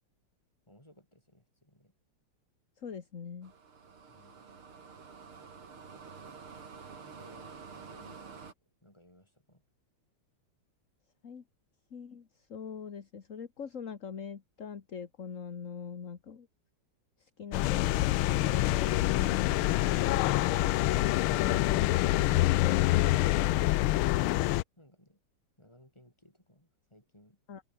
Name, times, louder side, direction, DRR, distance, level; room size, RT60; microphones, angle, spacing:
voice 1, 0.7-1.9 4.1-4.5 7.1-8.4 8.8-9.6 24.8-25.2 25.6-27.4, left 1 dB, 10° left, 7.7 m, -60 dB
voice 2, 2.8-3.5 11.2-11.4 11.9-16.5 17.2-20.3 21.3-24.1 27.5-27.6, left 6 dB, 40° left, 1.7 m, -43 dB
sound 1, 3.4-8.5, right 5 dB, 85° right, 3.9 m, -49 dB
sound 2, 17.5-24.6, left 17 dB, 80° left, 1.5 m, -26 dB
open air
omnidirectional pair, 2.3 m